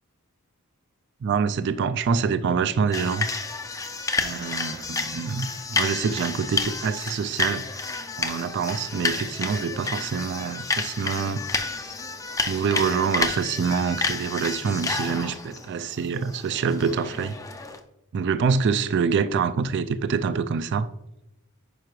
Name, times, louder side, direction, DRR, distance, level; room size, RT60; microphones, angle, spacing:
voice 1, 1.2-3.3 4.2-7.6 8.2-11.4 12.5-17.4 18.1-20.9, right 6 dB, 50° right, 0.3 m, -26 dB
sound 1, 2.9-17.8, left 3 dB, 15° left, 0.4 m, -30 dB
9.4 x 5.8 x 3.1 m
head